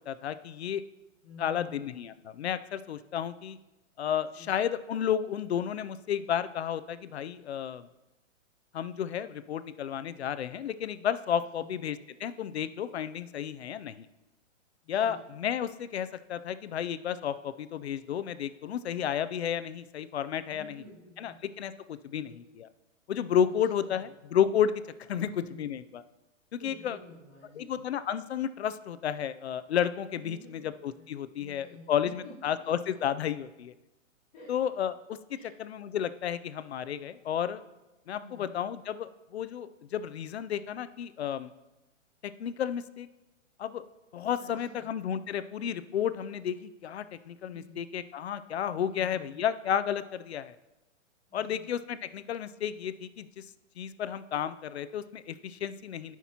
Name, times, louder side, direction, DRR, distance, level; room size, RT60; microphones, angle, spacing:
voice 1, 0.1-0.8 1.4-3.6 4.0-7.9 8.7-14.1 14.9-20.8 21.2-22.7 23.1-25.3 25.6-26.0 26.5-27.0 27.6-30.4 30.8-33.7 34.5-35.2 35.6-37.6 38.1-41.5 42.2-43.1 43.6-43.8 44.1-50.5 51.3-53.5 53.8-56.2, left 9 dB, 55° left, 13 dB, 0.5 m, -32 dB
voice 2, 1.2-2.0 4.3-4.5 11.6-11.7 14.8-15.2 20.5-21.4 22.1-22.4 23.4-24.0 25.1-25.6 26.6-27.8 30.2-32.9 34.3-34.5 35.3-35.6 38.2-38.5 44.4-44.9 47.5-47.9 48.8-49.5 51.3-51.7, left 1 dB, 15° left, -9 dB, 2.3 m, -51 dB
16.5 x 5.9 x 2.9 m, 1.0 s
hypercardioid pair, 175°, 38 cm